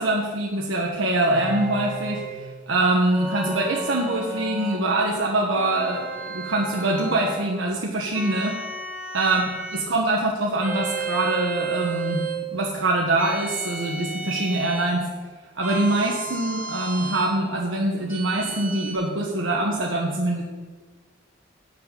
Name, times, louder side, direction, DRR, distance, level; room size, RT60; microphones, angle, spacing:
voice 1, 0.0-8.6 9.1-9.4 9.7-12.2 12.5-15.1 15.5-20.4, right 2 dB, 90° right, -1 dB, 1.4 m, -24 dB
sound 1, 1.3-2.4 3.1-4.9 5.5-7.4 8.1-9.9 10.6-12.4 13.2-15.0 15.6-17.3 18.1-18.9, right 3 dB, 10° right, 2.6 m, -32 dB
11.0 x 5.7 x 8.5 m, 1.4 s
head